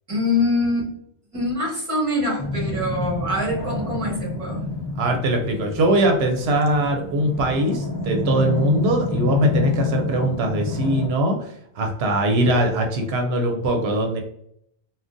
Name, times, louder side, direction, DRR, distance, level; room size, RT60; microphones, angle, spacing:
voice 1, 0.1-0.9 1.3-4.6, left 2 dB, 35° right, -2 dB, 1.2 m, -24 dB
sound 1, 2.4-11.1, left 3 dB, 30° left, 0.4 m, -28 dB
voice 2, 5.0-11.5 11.8-14.2, right 1 dB, 85° right, 3 dB, 0.8 m, -21 dB
3.7 x 2.2 x 2.5 m, 0.70 s
omnidirectional pair, 1.0 m